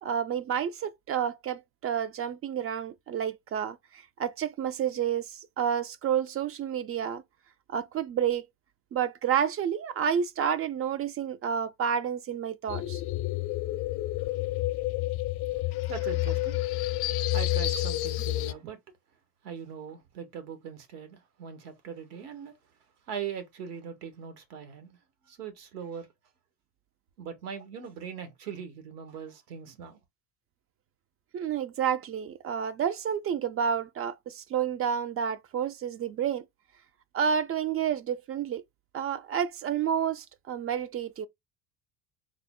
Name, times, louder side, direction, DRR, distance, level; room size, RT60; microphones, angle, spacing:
voice 1, 0.0-7.2 7.7-8.5 8.9-13.0 31.3-36.4 37.1-38.6 38.9-41.3, right 8 dB, 35° right, 0.4 m, -30 dB
sound 1, 12.7-18.5, left 16 dB, 60° left, 0.6 m, -29 dB
voice 2, 15.9-16.6 17.3-18.8 19.4-22.5 23.1-25.0 25.2-26.1 27.2-30.0, right 7 dB, 80° right, 1.3 m, -40 dB
3.8 x 2.0 x 3.5 m
hypercardioid pair, 75°, 45 cm